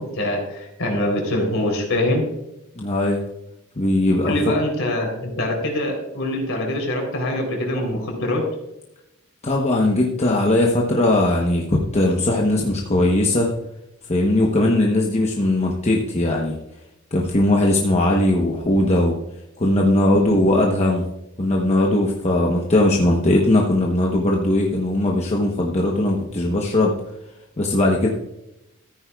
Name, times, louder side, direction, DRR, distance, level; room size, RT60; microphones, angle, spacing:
voice 1, 0.0-2.3 4.2-8.5, left 1 dB, 65° left, 1 dB, 3.5 m, -24 dB
voice 2, 2.7-3.2 3.8-4.4 9.4-13.5 14.1-16.6 17.1-19.2 19.6-21.0 21.4-26.9 27.6-28.1, left 1 dB, 30° left, -1 dB, 1.0 m, -19 dB
14.0 x 9.4 x 2.3 m, 0.89 s
head